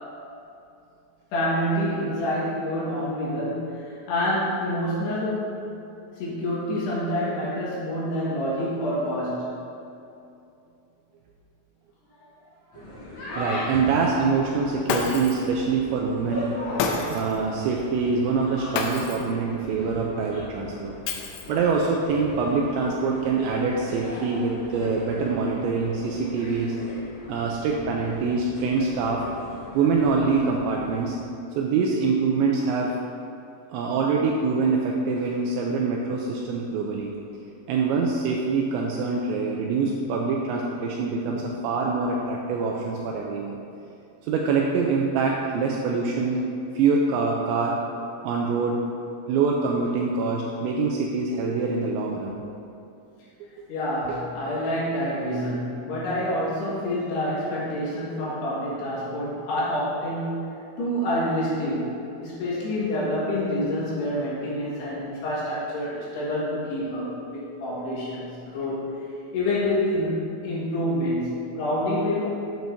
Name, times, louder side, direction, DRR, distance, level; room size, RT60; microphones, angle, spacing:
voice 1, 1.3-5.5 6.2-9.6 12.1-12.2 53.7-60.5 60.8-68.8 69.3-72.3, left 1 dB, 65° left, -8 dB, 3.3 m, -27 dB
sound 1, 12.7-31.0, equal, 50° left, 2.5 m, -38 dB
voice 2, 13.4-16.5 17.1-20.9 21.5-26.8 27.3-29.3 29.7-31.2 31.6-33.0 33.7-37.1 37.7-43.6 44.2-46.4 46.7-47.8 48.2-48.8 49.3-52.4 54.1-54.2, right 4 dB, 85° right, -1 dB, 2.6 m, -25 dB
Shatter, 14.9-15.5 16.8-17.4 18.7-19.3 21.1-21.7, left 5 dB, 85° left, 2.4 m, -28 dB
9.0 x 8.8 x 2.7 m, 2.7 s
omnidirectional pair, 5.7 m